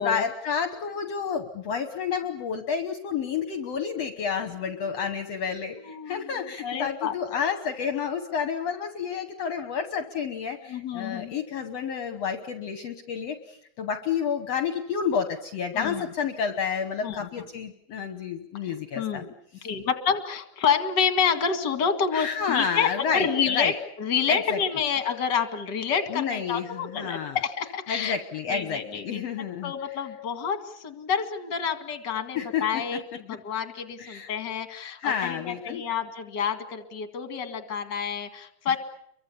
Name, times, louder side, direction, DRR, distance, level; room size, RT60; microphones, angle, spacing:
voice 1, 0.0-19.2 19.6-19.7 22.1-23.7 24.3-24.6 26.1-27.4 27.9-30.0 32.4-33.0 34.0-34.3 35.0-35.8 38.7-38.8, left 6 dB, 60° left, 7 dB, 2.2 m, -30 dB
voice 2, 5.8-6.3 6.6-7.1 10.6-11.3 15.7-16.0 17.0-17.3 18.6-19.3 19.6-28.2 28.5-29.2 29.6-38.8, left 7 dB, 40° left, 8 dB, 2.4 m, -28 dB
29.5 x 24.0 x 7.0 m, 0.74 s
omnidirectional pair, 3.5 m